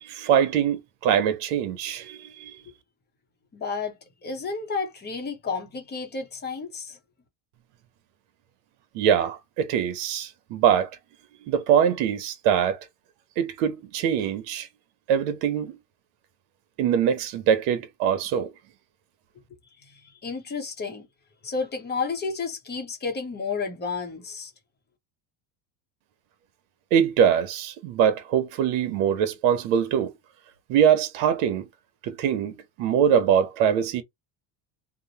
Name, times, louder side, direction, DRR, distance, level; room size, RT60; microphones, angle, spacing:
voice 1, 0.0-2.6 8.9-10.9 11.5-12.8 13.4-14.7 15.1-15.8 16.8-18.5 26.9-30.1 30.7-31.6 32.0-34.0, right 8 dB, 75° right, 0.9 m, -23 dB
voice 2, 3.5-7.0 19.8-21.1 21.4-24.5, left 4 dB, 20° left, 0.7 m, -31 dB
2.9 x 2.1 x 2.8 m
cardioid pair, 155°, 48 cm